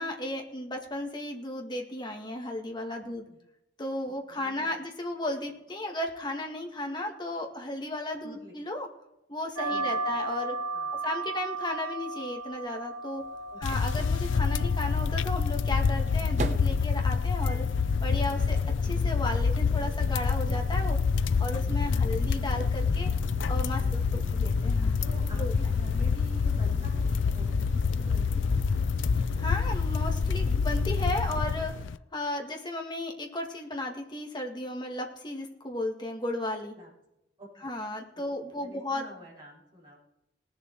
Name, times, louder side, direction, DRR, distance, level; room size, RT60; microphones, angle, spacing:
voice 1, 0.0-3.2 3.8-8.9 9.3-10.6 11.0-13.2 13.6-17.7 18.0-18.6 18.8-21.0 21.4-23.1 23.5-24.0 24.3-25.0 25.3-25.5 29.3-31.7 32.1-36.7 37.6-39.0, left 1 dB, 25° left, 2 dB, 1.9 m, -34 dB
voice 2, 3.0-3.4 4.3-4.8 8.2-8.5 9.7-9.9 10.7-11.1 13.5-14.0 23.8-24.3 25.0-28.5 36.7-36.9 37.4-37.7 38.4-40.0, equal, 25° right, -6 dB, 6.1 m, -49 dB
sound 1, 9.6-18.6, right 3 dB, 85° right, 1.6 m, -37 dB
sound 2, 13.3-13.4 13.5-13.6 15.5-31.8, right 1 dB, 40° right, 1.0 m, -40 dB
sound 3, 13.6-32.0, left 5 dB, 85° left, 0.4 m, -27 dB
19.5 x 7.2 x 4.6 m, 0.88 s
head